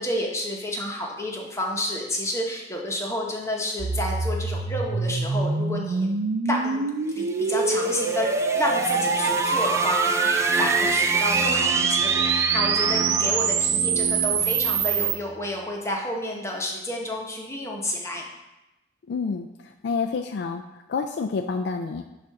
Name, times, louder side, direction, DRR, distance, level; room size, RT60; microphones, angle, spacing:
voice 1, 0.0-6.1 6.4-6.9 7.1-18.2, left 1 dB, 15° left, -1 dB, 0.9 m, -30 dB
sound 1, 3.8-15.2, right 5 dB, 80° right, 0.5 m, -24 dB
sound 2, 7.1-15.4, right 3 dB, 15° right, 0.3 m, -30 dB
voice 2, 19.1-20.6 20.9-22.0, left 5 dB, 70° left, 5 dB, 0.3 m, -28 dB
7.2 x 2.5 x 5.7 m, 0.96 s
head